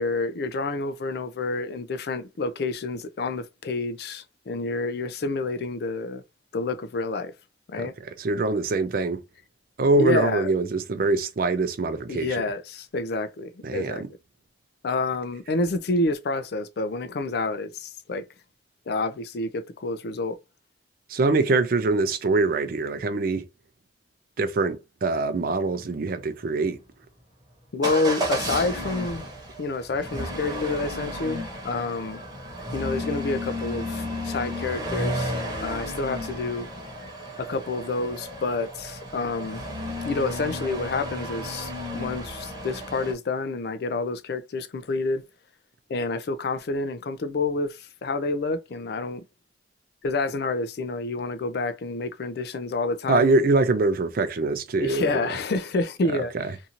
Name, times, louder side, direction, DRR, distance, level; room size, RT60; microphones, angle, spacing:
voice 1, 0.0-6.2 6.5-7.3 7.7-7.9 10.0-10.5 12.1-14.0 14.8-18.2 18.9-20.4 27.7-29.3 29.6-32.2 32.7-35.3 35.6-36.7 37.4-39.6 40.0-45.2 45.9-49.2 50.0-53.3 54.8-56.3, left 3 dB, 60° left, 0.4 m, -28 dB
voice 2, 7.8-9.2 9.8-12.4 13.6-14.1 21.1-23.5 24.4-26.8 53.1-55.4 56.1-56.5, right 3 dB, 55° right, 0.4 m, -24 dB
Motor vehicle (road) / Engine starting / Accelerating revving vroom, 27.8-43.1, equal, 25° right, 1.0 m, -33 dB
2.7 x 2.4 x 2.8 m
head